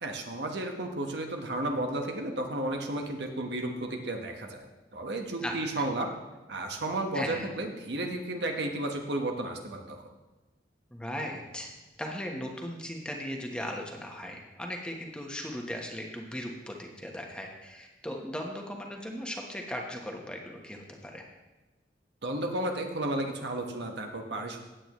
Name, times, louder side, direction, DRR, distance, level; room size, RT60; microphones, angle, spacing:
voice 1, 0.0-4.7 4.9-6.1 6.5-10.1 22.2-24.6, right 1 dB, 75° right, 3 dB, 1.4 m, -33 dB
voice 2, 5.4-5.8 7.1-7.5 10.9-11.7 12.0-21.2, equal, 5° left, 1 dB, 1.2 m, -38 dB
15.5 x 8.8 x 3.2 m, 1.2 s
head